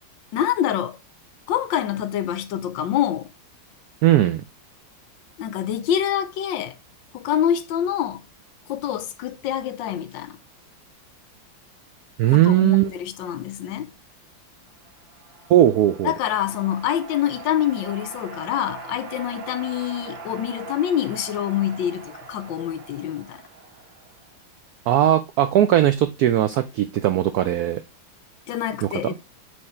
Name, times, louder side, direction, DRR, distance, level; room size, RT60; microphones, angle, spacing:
voice 1, 0.3-1.0 1.5-3.3 5.4-6.7 7.1-8.2 8.7-10.4 12.3-13.9 16.0-23.4 28.5-29.1, left 10 dB, 75° left, 1.3 m, -26 dB
voice 2, 4.0-4.4 12.2-12.9 15.5-16.1 24.9-27.8 28.8-29.1, right 12 dB, 90° right, 0.8 m, -18 dB
sound 1, 14.8-24.4, right 5 dB, 70° right, 1.7 m, -41 dB
8.5 x 3.3 x 4.3 m
omnidirectional pair, 2.2 m